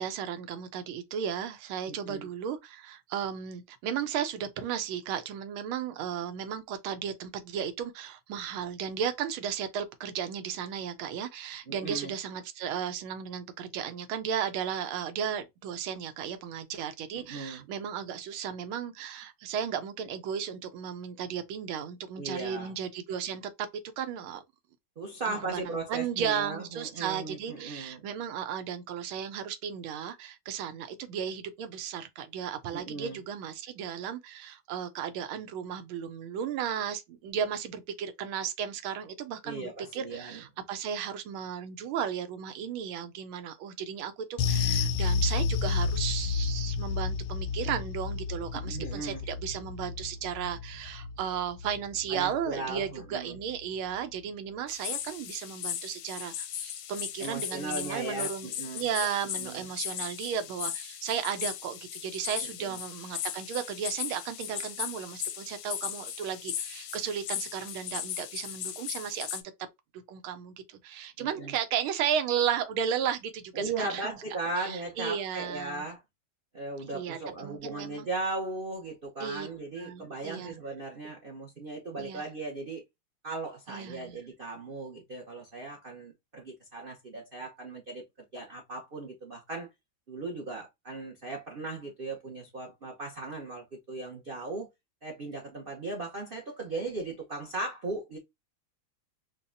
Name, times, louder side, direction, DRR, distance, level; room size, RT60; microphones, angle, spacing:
voice 1, 0.0-23.7 24.0-24.4 25.3-58.5 58.7-69.7 70.1-74.2 74.6-75.8 76.9-78.1 79.2-79.5 79.8-80.5 82.0-82.3 83.7-84.2, right 8 dB, 90° right, 1.5 m, -34 dB
voice 2, 1.9-2.3 11.7-12.1 17.1-17.6 22.2-22.7 25.0-28.0 32.7-33.2 39.4-40.4 48.5-49.2 52.1-53.4 57.2-58.9 59.4-59.7 62.6-62.8 71.2-71.5 73.5-76.0 76.5-82.8 83.2-88.0 88.3-89.7 90.1-94.7 95.0-98.2, right 3 dB, 65° right, 0.5 m, -37 dB
sound 1, 44.4-53.1 53.3-53.6 53.9-54.0, left 5 dB, 85° left, 1.5 m, -31 dB
sound 2, 54.7-69.4, left 10 dB, 70° left, 1.1 m, -37 dB
5.2 x 2.3 x 2.5 m
omnidirectional pair, 2.2 m